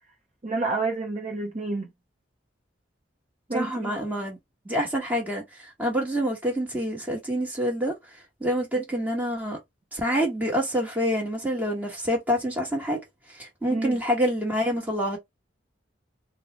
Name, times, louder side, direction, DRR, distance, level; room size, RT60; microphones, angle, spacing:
voice 1, 0.4-1.9 3.5-3.9 13.7-14.0, right 3 dB, 35° right, 0.7 m, -29 dB
voice 2, 3.5-4.4 4.6-7.9 8.4-9.6 9.9-13.0 13.3-15.2, equal, 10° right, 1.1 m, -27 dB
3.8 x 2.1 x 2.8 m
head